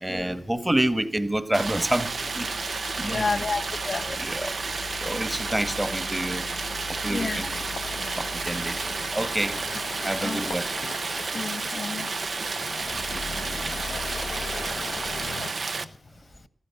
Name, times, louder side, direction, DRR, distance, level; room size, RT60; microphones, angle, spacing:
voice 1, 0.0-2.1 2.3-2.5 3.0-3.4 4.2-4.5 5.0-6.4 7.0-7.6 8.2-8.8 9.1-9.5 10.0-10.7, right 1 dB, 15° right, 12 dB, 1.4 m, -27 dB
Stream, 1.5-15.8, right 4 dB, 65° right, 0.8 m, -31 dB
sound 1, 1.6-15.5, left 5 dB, 85° left, 0.8 m, -39 dB
voice 2, 3.0-4.2 7.1-7.4 10.2-10.4 11.3-12.1 13.6-13.7 15.4-15.5, left 4 dB, 65° left, 8 dB, 0.8 m, -31 dB
14.5 x 11.5 x 7.0 m, 0.74 s
cardioid pair, 40°, 0 cm